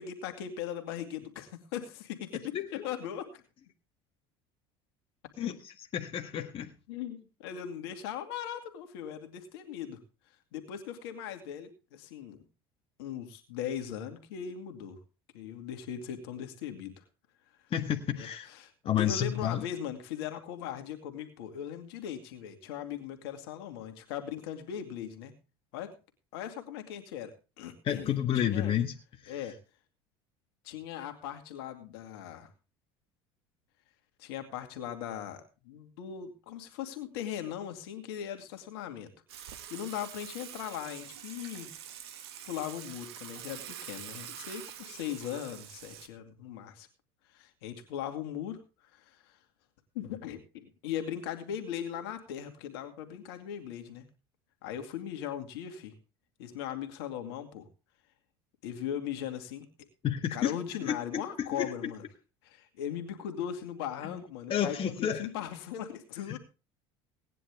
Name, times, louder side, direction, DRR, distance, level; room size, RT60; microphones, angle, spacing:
voice 1, 0.0-2.5 2.8-3.4 6.9-10.0 10.5-12.4 13.0-15.0 15.3-17.0 18.2-18.7 19.0-25.3 25.7-25.9 26.3-28.1 28.3-28.7 29.3-29.6 30.6-32.5 34.2-39.1 39.4-41.7 42.5-46.9 47.3-48.6 48.9-49.4 49.9-54.1 54.6-55.9 56.4-57.7 58.6-59.7 60.3-62.0 62.4-66.4, left 9 dB, 75° left, 7 dB, 2.3 m, -39 dB
voice 2, 2.5-2.9 5.4-6.7 17.7-18.5 18.8-19.6 27.8-28.9 29.2-29.5 60.0-60.5 60.8-61.9 64.0-64.2 64.5-65.3 66.3-66.4, left 9 dB, 45° left, 5 dB, 1.6 m, -31 dB
Water / Water tap faucet / Sink (filling or washing), 39.3-46.1, right 10 dB, 85° right, 1.6 m, -45 dB
18.0 x 10.0 x 3.5 m, 0.31 s
hypercardioid pair, 80°, 13 cm